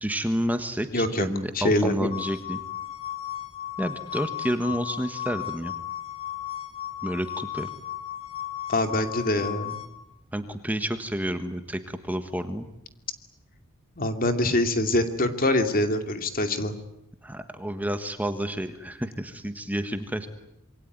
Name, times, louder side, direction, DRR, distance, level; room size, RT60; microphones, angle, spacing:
voice 1, 0.0-2.6 3.8-5.7 7.0-7.7 10.3-12.7 17.2-20.3, equal, 5° right, 8 dB, 1.4 m, -30 dB
voice 2, 0.9-1.3 1.5-2.1 8.7-9.8 14.0-16.7, left 1 dB, 40° left, 8 dB, 2.6 m, -24 dB
sound 1, 2.1-9.9, left 12 dB, 25° left, 2.7 m, -35 dB
26.5 x 23.5 x 9.6 m, 0.84 s
head